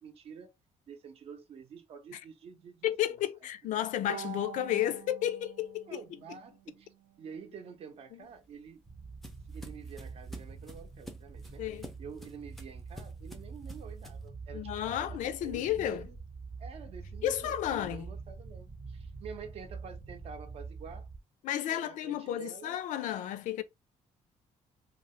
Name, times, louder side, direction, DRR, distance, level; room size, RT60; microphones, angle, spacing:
voice 1, 0.0-0.5 0.9-3.2 5.9-6.9 7.2-8.8 9.5-16.2 16.6-21.1 21.6-22.8, right 6 dB, 50° right, 0.6 m, -48 dB
voice 2, 2.8-6.0 11.6-11.9 14.5-16.0 17.2-18.1 21.4-23.6, left 12 dB, 70° left, 0.4 m, -32 dB
Bowed string instrument, 4.1-7.4, right 10 dB, 90° right, 0.5 m, -47 dB
sound 1, 8.3-14.3, equal, ahead, 0.5 m, -50 dB
sound 2, 8.8-21.2, right 4 dB, 20° right, 0.8 m, -45 dB
2.7 x 2.5 x 3.0 m
cardioid pair, 175°, 13 cm